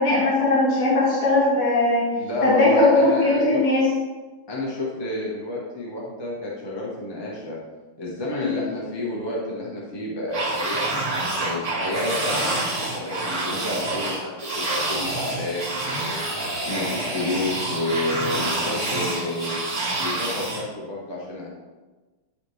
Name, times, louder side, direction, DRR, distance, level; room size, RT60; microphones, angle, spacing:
voice 1, 0.0-2.0 2.4-3.8 8.4-8.5, left 2 dB, 55° left, -9 dB, 2.8 m, -19 dB
voice 2, 2.1-3.6 4.5-7.6 8.0-10.8 11.4-12.6 12.9-16.3 16.6-19.6 20.0-21.5, left 2 dB, 15° left, -5 dB, 0.8 m, -30 dB
sound 1, 10.3-20.6, right 2 dB, 35° right, 2.0 m, -27 dB
10.0 x 4.2 x 3.3 m, 1.2 s
omnidirectional pair, 2.3 m